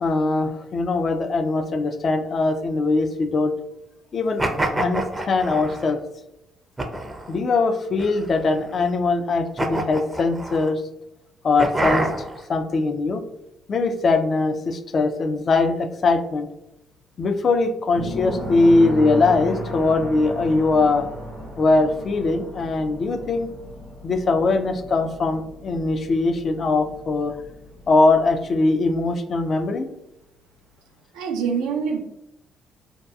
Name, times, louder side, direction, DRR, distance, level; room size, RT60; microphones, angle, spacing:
voice 1, 0.0-3.5 4.1-4.4 4.8-6.0 7.3-10.8 11.4-12.1 12.5-13.2 13.7-16.5 17.2-21.1 21.6-23.5 24.0-27.3 27.9-29.9, left 3 dB, 50° left, 7 dB, 0.3 m, -21 dB
sound 1, 4.4-5.9 6.8-7.4 8.0-8.7 9.6-10.7 11.6-12.4, right 2 dB, 20° right, 0.5 m, -27 dB
sound 2, 17.9-28.5, equal, 85° left, 1.1 m, -35 dB
voice 2, 31.1-32.0, right 6 dB, 85° right, 3 dB, 0.4 m, -25 dB
2.7 x 2.3 x 2.2 m, 0.85 s
supercardioid pair, 55°, 0 cm